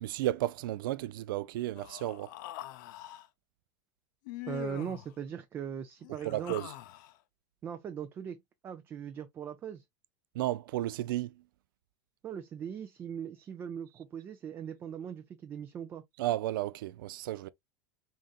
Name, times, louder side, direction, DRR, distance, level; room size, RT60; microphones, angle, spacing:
voice 1, 0.0-2.3 6.2-6.7 10.3-11.4 16.2-17.5, right 15 dB, 85° right, 0.4 m, -33 dB
Human voice, 1.7-3.3 4.3-5.1 6.0-7.2, left 14 dB, 65° left, 0.5 m, -44 dB
voice 2, 4.5-6.6 7.6-8.4 8.6-9.8 12.2-16.0, right 8 dB, 20° right, 0.4 m, -40 dB
3.8 x 3.8 x 2.3 m
supercardioid pair, 165°, 11 cm